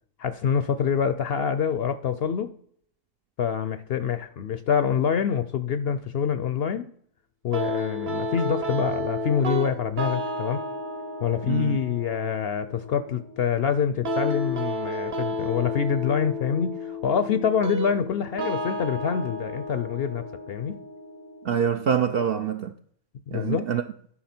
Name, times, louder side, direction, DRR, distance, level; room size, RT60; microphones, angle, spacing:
voice 1, 0.2-2.5 3.4-6.9 7.4-10.6 11.2-20.8 23.3-23.7, left 7 dB, 65° left, 0.6 m, -26 dB
sound 1, 7.5-22.5, left 1 dB, 40° right, 1.1 m, -32 dB
voice 2, 11.5-11.8 21.4-22.7 23.3-23.8, right 8 dB, 65° right, 0.6 m, -25 dB
11.5 x 5.7 x 4.3 m
omnidirectional pair, 1.4 m